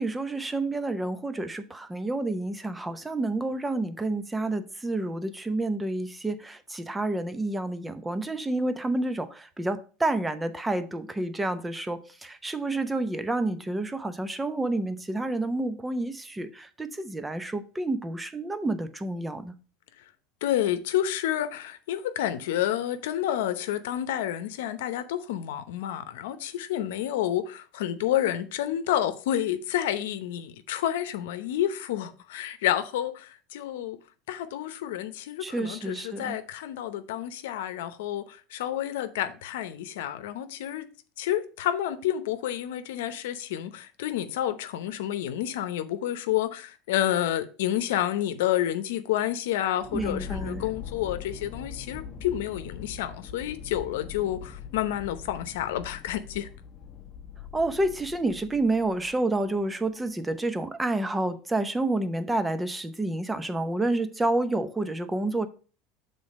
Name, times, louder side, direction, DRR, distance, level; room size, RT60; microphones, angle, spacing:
voice 1, 0.0-19.5 35.4-36.4 49.9-50.7 57.5-65.5, right 2 dB, 10° right, 0.7 m, -29 dB
voice 2, 20.4-34.0 34.3-40.9 41.2-56.5, left 12 dB, 85° left, 0.8 m, -29 dB
sound 1, 49.8-59.4, left 7 dB, 35° left, 0.9 m, -42 dB
7.0 x 3.9 x 5.2 m
supercardioid pair, 130°, 0 cm